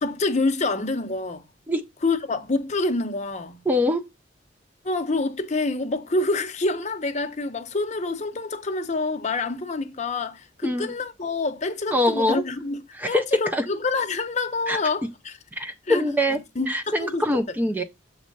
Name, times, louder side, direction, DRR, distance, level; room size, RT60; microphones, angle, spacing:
voice 1, 0.0-1.4 2.0-3.6 4.8-12.8 13.1-15.4 15.9-16.0 16.6-17.3, left 3 dB, 40° left, 0.8 m, -27 dB
voice 2, 3.7-4.0 10.6-10.9 11.9-12.4 12.9-13.2 13.5-13.7 14.7-14.8 15.6-16.4 16.7-17.8, left 1 dB, 10° right, 0.4 m, -23 dB
7.3 x 3.1 x 5.2 m
head